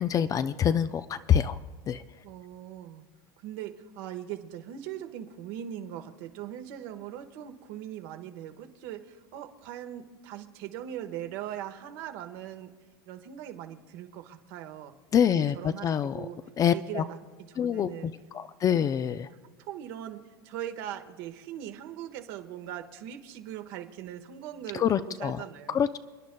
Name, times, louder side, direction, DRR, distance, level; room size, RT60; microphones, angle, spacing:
voice 1, 0.0-1.6 1.9-2.0 15.1-16.3 16.6-17.0 17.6-19.3 24.7-25.4 25.7-26.0, left 8 dB, 30° left, 12 dB, 0.4 m, -26 dB
voice 2, 2.2-3.0 3.4-12.7 13.0-14.9 15.3-16.4 16.7-17.2 17.5-18.1 18.8-18.9 19.6-25.9, right 11 dB, 65° right, 7 dB, 1.3 m, -40 dB
29.5 x 10.5 x 2.3 m, 1.5 s
supercardioid pair, 115°, 12 cm